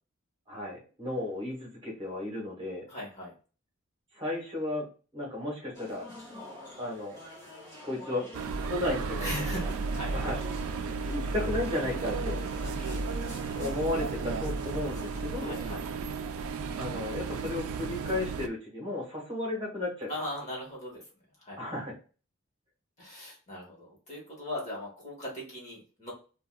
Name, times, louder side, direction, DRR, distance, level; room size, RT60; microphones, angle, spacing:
voice 1, 0.5-2.9 4.1-4.9 5.1-6.1 6.8-7.2 7.8-8.2 8.6-9.3 10.1-10.4 11.1-12.4 13.5-15.5 16.7-20.1 21.6-21.9, left 2 dB, 25° right, -3 dB, 1.1 m, -34 dB
voice 2, 2.9-3.3 9.2-10.3 12.6-13.0 15.4-15.8 20.1-21.0 21.4-21.8 23.0-26.1, left 1 dB, 35° left, -3 dB, 1.2 m, -39 dB
sound 1, 5.7-15.7, left 1 dB, 15° left, 1.6 m, -48 dB
sound 2, 8.3-18.5, right 4 dB, 85° right, 0.4 m, -34 dB
3.6 x 2.3 x 2.2 m, 0.36 s
head